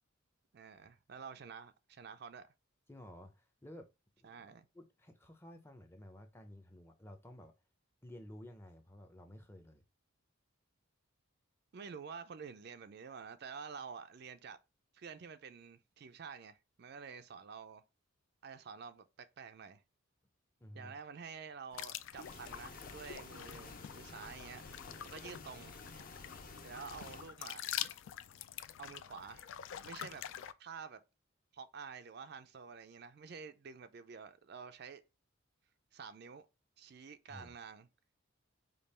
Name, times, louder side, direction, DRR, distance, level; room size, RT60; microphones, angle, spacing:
voice 1, 0.5-2.5 4.2-4.7 11.7-14.6 14.9-17.8 18.4-19.8 20.7-24.6 25.0-25.7 26.6-27.7 28.8-29.5 29.8-30.2 30.6-31.0 31.5-35.0 35.9-36.5 36.8-37.9, right 6 dB, 50° right, 0.4 m, -49 dB
voice 2, 2.9-3.9 4.2-7.5 8.0-9.8 20.6-21.0 37.3-37.5, left 1 dB, 10° left, 0.6 m, -53 dB
sound 1, 21.7-30.5, left 11 dB, 60° left, 0.3 m, -46 dB
sound 2, 22.1-27.3, left 3 dB, 40° left, 0.7 m, -52 dB
5.2 x 2.4 x 4.2 m
head